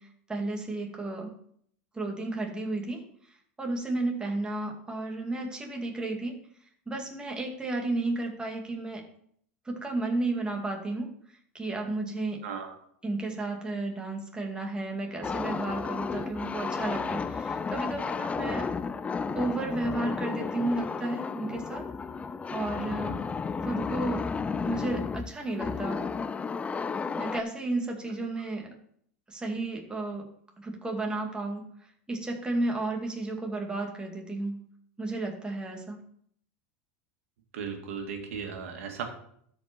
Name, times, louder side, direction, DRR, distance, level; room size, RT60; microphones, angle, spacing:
voice 1, 0.0-1.3 1.9-6.4 6.9-9.0 9.7-12.4 13.0-18.7 19.3-21.9 22.5-23.2 23.6-24.3 24.6-26.0 27.2-28.7 29.3-30.3 30.6-31.7 32.1-34.6 35.0-36.0, right 2 dB, 10° right, 1 dB, 2.3 m, -33 dB
voice 2, 12.4-12.8 37.5-39.0, right 6 dB, 80° right, 4 dB, 2.1 m, -36 dB
sound 1, 15.2-27.4, left 5 dB, 20° left, 0.4 m, -33 dB
12.5 x 5.2 x 4.5 m, 0.66 s
hypercardioid pair, 105°, 7 cm